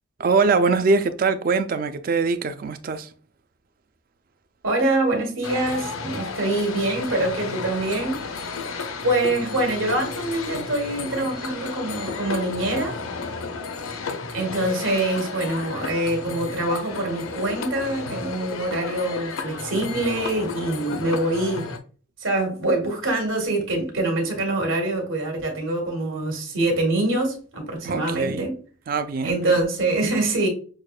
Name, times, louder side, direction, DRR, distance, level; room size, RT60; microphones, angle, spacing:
voice 1, 0.2-3.1 27.8-28.5 28.9-29.6, right 4 dB, 45° right, 0.3 m, -22 dB
voice 2, 4.6-8.2 9.0-12.9 14.3-21.7 22.2-28.6 29.2-30.5, right 2 dB, 75° right, 1.5 m, -24 dB
sound 1, 5.4-21.8, left 4 dB, 85° left, 0.6 m, -33 dB
6.3 x 2.2 x 2.3 m
head